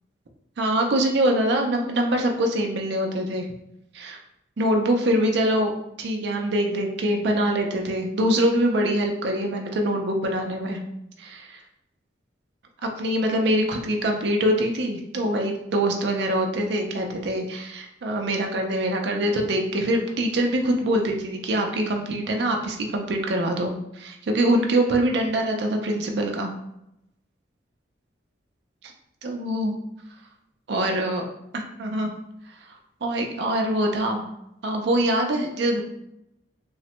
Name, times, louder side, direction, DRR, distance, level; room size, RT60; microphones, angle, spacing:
voice 1, 0.6-3.5 3.9-4.2 4.6-5.7 6.0-10.8 11.2-11.6 12.8-26.5 29.2-29.8 30.7-31.2 31.5-32.1 33.0-34.3 34.6-35.8, right 1 dB, 65° right, 2 dB, 0.4 m, -24 dB
3.2 x 2.1 x 2.8 m, 0.82 s
head